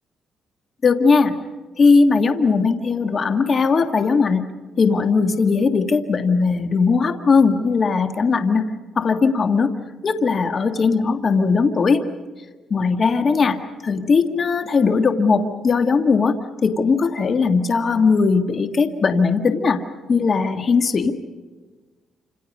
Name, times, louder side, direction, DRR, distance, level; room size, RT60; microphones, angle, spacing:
voice 1, 0.8-1.3 1.8-4.4 4.8-8.6 9.0-9.7 10.0-12.0 12.7-13.6 13.8-16.4 16.6-19.8 20.1-21.1, left 4 dB, 45° left, 7 dB, 1.7 m, -18 dB
28.5 x 27.0 x 5.4 m, 1.3 s
cardioid pair, 90°, 0 cm